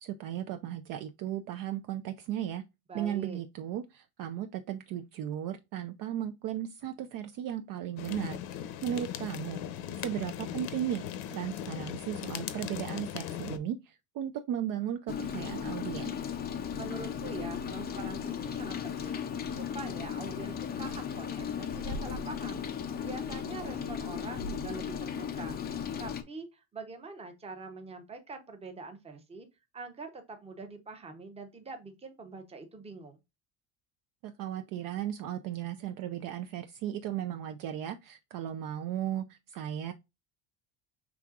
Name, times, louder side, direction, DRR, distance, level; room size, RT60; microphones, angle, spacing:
voice 1, 0.0-2.6 2.9-9.6 10.0-11.0 11.3-16.2 34.2-39.9, right 10 dB, 50° right, 0.5 m, -36 dB
voice 2, 2.9-3.4 16.7-22.6 23.0-25.6 26.0-29.5 29.7-33.2, right 3 dB, 15° right, 0.7 m, -44 dB
sound 1, 8.0-13.6, left 10 dB, 80° left, 0.9 m, -39 dB
Rain, 15.1-26.2, left 7 dB, 25° left, 0.4 m, -36 dB
6.1 x 3.5 x 2.4 m
cardioid pair, 165°, 45 cm